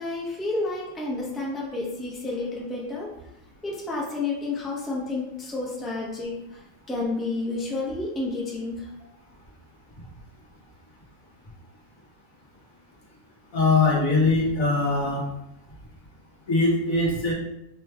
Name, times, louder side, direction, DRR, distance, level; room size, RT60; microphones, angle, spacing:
voice 1, 0.0-3.1 3.6-8.9, left 2 dB, ahead, -4 dB, 0.6 m, -30 dB
voice 2, 13.5-15.2 16.5-17.3, left 3 dB, 85° left, -4 dB, 1.6 m, -21 dB
5.1 x 3.3 x 2.2 m, 0.86 s
omnidirectional pair, 1.4 m